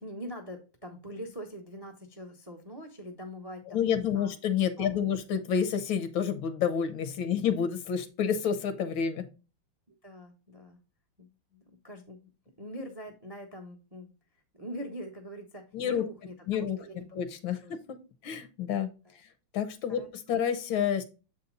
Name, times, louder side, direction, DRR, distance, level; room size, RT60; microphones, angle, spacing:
voice 1, 0.0-4.3 4.8-5.1 7.2-7.5 9.9-10.8 11.2-12.2 12.6-14.1 14.5-17.1 17.6-17.7 19.0-19.2 19.9-20.4, equal, 25° right, 4 dB, 0.5 m, -43 dB
voice 2, 3.7-9.3 15.7-16.0 16.5-16.9 17.1-18.9 19.5-21.0, left 8 dB, 75° left, 10 dB, 1.6 m, -29 dB
7.4 x 4.2 x 3.8 m, 0.32 s
omnidirectional pair, 2.2 m